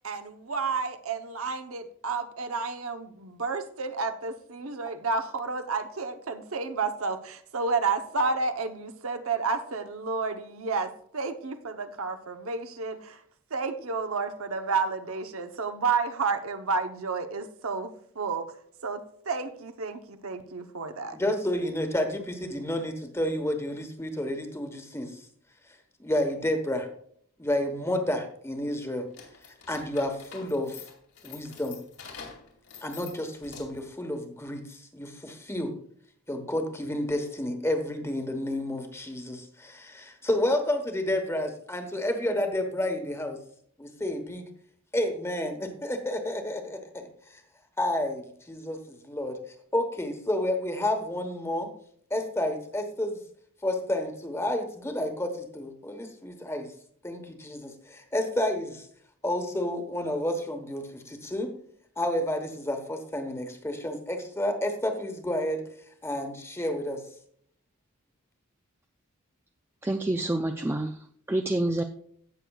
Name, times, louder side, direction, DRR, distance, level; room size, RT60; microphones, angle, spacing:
voice 1, 0.0-13.2 13.5-18.5 18.8-21.2, right 4 dB, 75° right, 8 dB, 0.9 m, -31 dB
voice 2, 21.1-25.3 26.0-26.9 27.4-29.1 29.7-30.9 31.2-31.8 32.8-35.7 36.3-43.4 43.8-44.5 44.9-47.4 47.8-49.4 49.7-51.7 52.1-53.2 53.6-56.7 57.0-58.9 59.2-61.5 62.0-65.6 66.0-67.0, left 1 dB, 10° left, 6 dB, 1.1 m, -30 dB
sound 1, 29.1-33.9, left 6 dB, 80° left, 2.6 m, -46 dB
voice 3, 69.8-71.8, right 1 dB, 10° right, 5 dB, 0.4 m, -28 dB
17.0 x 6.7 x 2.3 m, 0.63 s
head